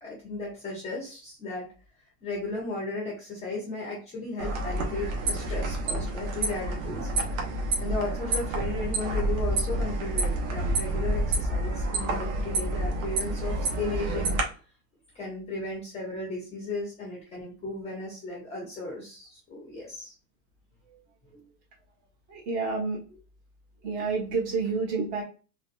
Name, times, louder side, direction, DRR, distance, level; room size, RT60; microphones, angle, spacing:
voice 1, 0.0-1.7 2.2-7.1 7.8-14.6 15.1-20.1 21.3-21.5, left 2 dB, 15° left, -3 dB, 0.8 m, -35 dB
sound 1, 4.4-14.4, right 2 dB, 60° right, 1.1 m, -29 dB
voice 2, 22.3-23.0 23.8-25.2, right 4 dB, 40° right, -1 dB, 1.4 m, -29 dB
4.0 x 2.3 x 2.5 m, 0.35 s
supercardioid pair, 160°, 46 cm